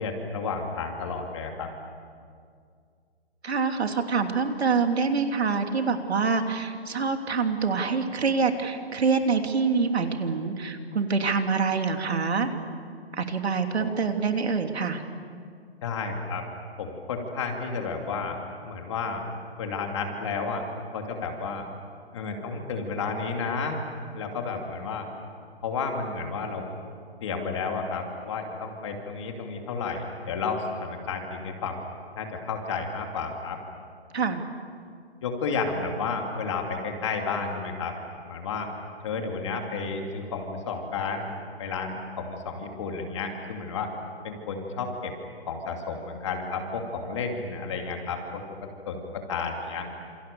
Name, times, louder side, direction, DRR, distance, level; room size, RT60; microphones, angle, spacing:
voice 1, 0.0-1.7 13.8-13.9 15.8-16.4 16.8-18.4 18.6-19.2 19.6-20.6 20.9-21.7 22.1-23.8 24.1-25.1 25.6-26.7 27.2-31.8 32.2-33.6 35.2-37.9 38.3-38.7 39.0-41.3 41.6-43.9 44.2-45.1 45.5-48.4 48.9-49.9, left 4 dB, 25° left, 3 dB, 2.6 m, -31 dB
voice 2, 3.4-12.5 13.1-15.0 34.1-34.4, right 5 dB, 70° right, 5 dB, 3.0 m, -26 dB
28.5 x 28.0 x 6.9 m, 2.2 s
hypercardioid pair, 175°, 33 cm